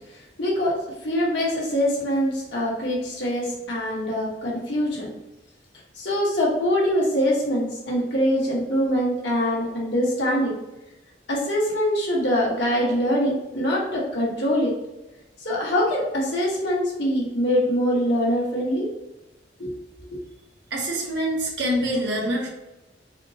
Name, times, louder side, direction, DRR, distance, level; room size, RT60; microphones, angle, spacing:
voice 1, 0.1-0.8 1.0-5.1 5.9-10.5 11.3-14.7 15.4-18.9 19.6-19.8 20.1-20.2, equal, 80° left, -4 dB, 1.2 m, -24 dB
voice 2, 20.7-22.5, equal, 70° right, -1 dB, 0.9 m, -25 dB
4.1 x 2.0 x 2.7 m, 0.99 s
head